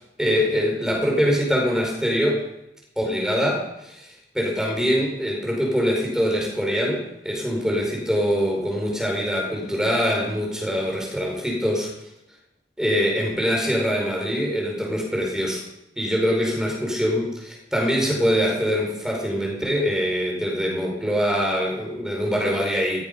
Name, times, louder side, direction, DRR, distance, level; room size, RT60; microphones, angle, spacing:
voice 1, 0.2-2.4 3.0-11.9 12.8-15.6 16.0-23.0, equal, 5° right, -1 dB, 5.1 m, -23 dB
16.0 x 16.0 x 5.5 m, 0.86 s
head